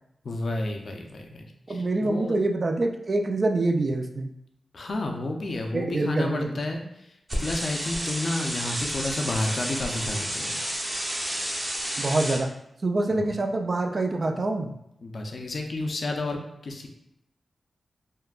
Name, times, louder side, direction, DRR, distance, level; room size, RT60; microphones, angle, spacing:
voice 1, 0.2-2.4 4.7-7.1 7.4-10.5 13.1-13.2 15.0-16.9, left 2 dB, 65° left, 3 dB, 0.4 m, -31 dB
voice 2, 1.7-4.3 5.7-6.6 12.0-12.5 12.8-14.8, right 2 dB, 50° right, 4 dB, 0.3 m, -25 dB
sound 1, 7.3-12.4, equal, 25° right, 0.7 m, -31 dB
3.5 x 2.1 x 2.4 m, 0.79 s
cardioid pair, 60°, 0 cm